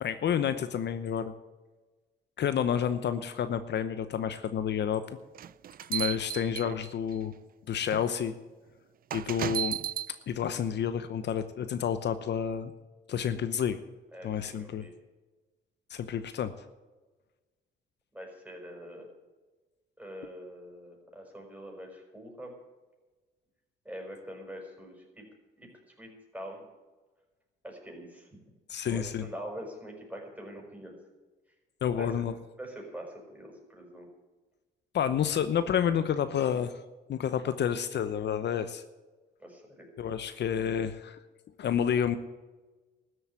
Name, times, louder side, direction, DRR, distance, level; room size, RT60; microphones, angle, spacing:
voice 1, 0.0-1.3 2.4-5.0 5.9-7.3 7.7-8.3 9.1-9.8 10.1-12.7 13.1-13.8 14.2-14.9 15.9-16.6 28.7-29.2 31.8-32.3 34.9-36.7 37.1-38.8 40.0-41.2 41.6-42.2, left 8 dB, 60° left, 11 dB, 0.9 m, -29 dB
sound 1, 5.3-7.1 7.9-8.0 9.1-10.1, right 11 dB, 50° right, 0.4 m, -34 dB
voice 2, 14.1-14.9 18.1-19.1 20.0-22.6 23.8-25.2 25.6-25.7 26.0-26.6 27.6-28.3 28.8-31.0 31.9-32.2 32.6-34.1 39.4-39.8, equal, 5° right, 0 dB, 5.8 m, -44 dB
13.5 x 8.1 x 9.4 m, 1.2 s
cardioid pair, 90°, 20 cm